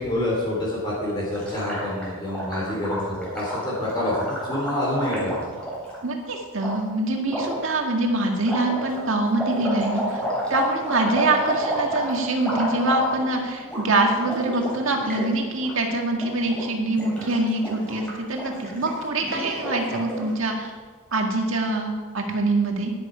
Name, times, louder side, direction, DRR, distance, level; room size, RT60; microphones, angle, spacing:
voice 1, 0.0-5.3, left 1 dB, 20° left, -5 dB, 3.0 m, -27 dB
Gurgling, 1.3-6.0 6.6-6.7 7.3-7.7 8.4-13.4 13.6-13.8 14.1-15.3 15.5-15.7 16.1-16.6 16.9-20.3, equal, 5° left, 3.7 m, -31 dB
voice 2, 6.0-10.2 10.5-20.7 21.1-22.9, right 2 dB, 65° right, 2 dB, 1.9 m, -24 dB
11.5 x 11.0 x 5.0 m, 1.5 s
head